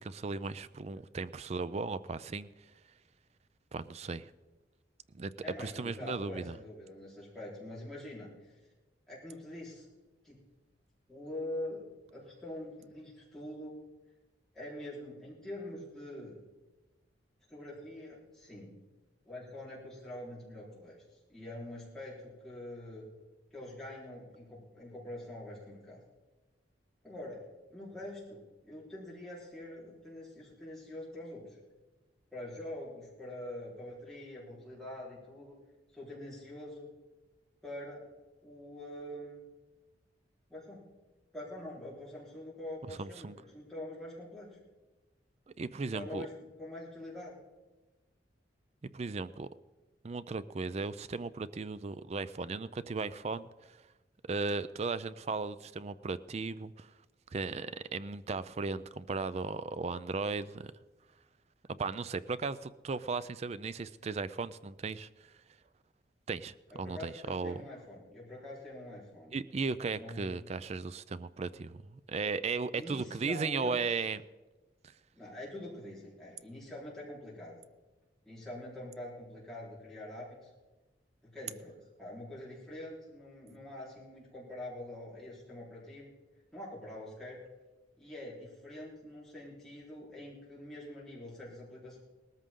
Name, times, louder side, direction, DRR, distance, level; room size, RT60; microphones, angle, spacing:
voice 1, 0.0-2.5 3.7-4.3 5.1-5.3 5.6-6.5 42.9-43.4 45.6-46.3 48.9-49.5 50.0-53.8 54.2-56.9 57.3-60.7 61.8-65.1 66.3-67.6 69.3-71.8 72.1-74.2, right 4 dB, 35° right, 15 dB, 0.4 m, -36 dB
voice 2, 5.4-8.5 9.1-9.9 10.2-10.4 11.1-11.8 12.1-13.8 14.5-16.4 17.5-18.7 19.3-21.0 21.3-23.1 23.5-26.0 27.0-27.4 27.7-31.5 32.3-35.6 35.9-36.9 37.6-38.0 38.4-39.4 40.5-40.8 41.3-44.6 45.8-47.4 66.7-69.3 69.9-70.3 72.7-73.8 75.1-77.5 78.3-80.5 81.2-86.1 86.5-87.4 88.0-92.0, left 1 dB, 5° left, -7 dB, 4.2 m, -45 dB
18.5 x 13.5 x 3.7 m, 1.2 s
head